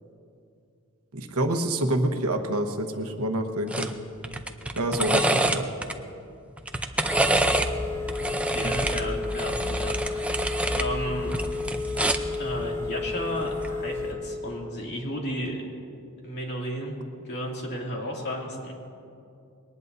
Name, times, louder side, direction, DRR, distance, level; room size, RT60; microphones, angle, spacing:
voice 1, 1.1-3.9 4.8-5.7 8.6-8.7, right 1 dB, 80° right, 5 dB, 1.2 m, -27 dB
sound 1, 3.7-3.9 4.2-5.9 6.6-7.7 8.1-10.9 11.2-12.4 13.5-13.7, right 1 dB, 5° right, 0.6 m, -26 dB
Telephone, 7.1-14.1, left 3 dB, 10° left, 1.2 m, -31 dB
voice 2, 8.2-10.4 10.7-11.3 12.4-15.6 16.2-17.0 17.2-18.7, equal, 50° left, -1 dB, 2.5 m, -33 dB
21.5 x 19.0 x 2.7 m, 2.5 s
head